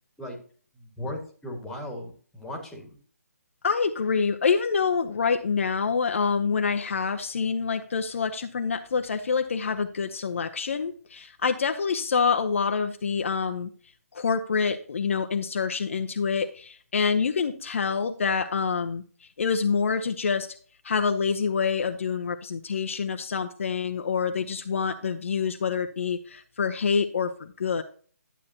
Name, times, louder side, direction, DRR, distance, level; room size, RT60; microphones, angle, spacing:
voice 1, 0.7-3.0, left 1 dB, 5° left, 0 dB, 1.8 m, -37 dB
voice 2, 3.6-13.7 14.1-20.5 20.8-27.8, left 5 dB, 50° left, 5 dB, 0.8 m, -26 dB
12.0 x 8.4 x 2.8 m, 0.43 s
figure-of-eight pair, 145°, 9 cm